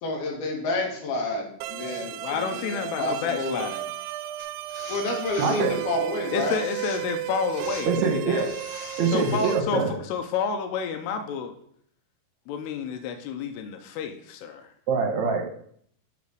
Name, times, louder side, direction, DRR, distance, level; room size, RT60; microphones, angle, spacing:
voice 1, 0.0-3.6 4.9-6.6, left 2 dB, 70° left, 0 dB, 3.6 m, -29 dB
sound 1, 1.6-9.6, right 14 dB, 85° right, 2.5 m, -34 dB
voice 2, 2.2-3.9 6.3-8.5 9.1-11.6 12.5-14.7, left 6 dB, 90° left, 5 dB, 2.8 m, -30 dB
sound 2, 4.4-5.6 6.3-7.2 7.5-7.9 8.4-9.6, left 3 dB, 45° left, 1.9 m, -43 dB
voice 3, 5.4-5.7 7.9-8.5 9.0-9.9 14.9-15.4, right 5 dB, 60° right, 4 dB, 2.1 m, -24 dB
11.5 x 4.1 x 6.4 m, 0.64 s
omnidirectional pair, 4.8 m